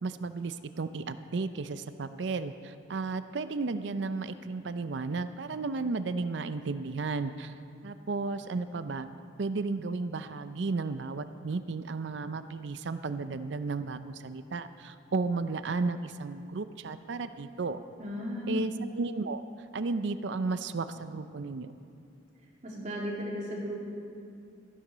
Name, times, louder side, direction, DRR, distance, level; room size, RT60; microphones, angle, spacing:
voice 1, 0.0-7.5 7.8-9.1 9.4-17.8 18.5-19.4 19.7-21.7, right 3 dB, 65° right, 11 dB, 0.5 m, -33 dB
voice 2, 18.0-18.7 22.6-23.8, left 1 dB, 40° right, -3 dB, 2.7 m, -35 dB
13.5 x 12.0 x 5.0 m, 2.4 s
head